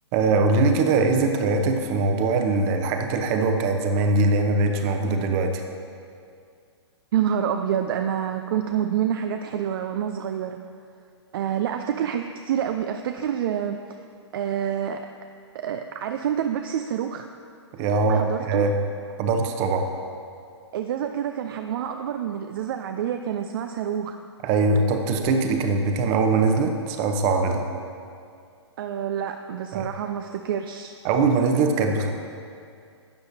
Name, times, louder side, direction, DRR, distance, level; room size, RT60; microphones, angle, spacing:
voice 1, 0.1-5.6 17.7-18.7 19.2-19.9 24.4-27.6 29.7-29.9 31.0-32.1, right 3 dB, 35° right, 5 dB, 0.8 m, -22 dB
voice 2, 7.1-10.6 11.3-14.0 14.3-15.0 15.5-17.3 18.1-18.6 20.7-24.2 28.8-31.0, right 9 dB, 50° right, 7 dB, 0.4 m, -27 dB
12.0 x 7.9 x 2.8 m, 2.4 s
hypercardioid pair, 130°, 15 cm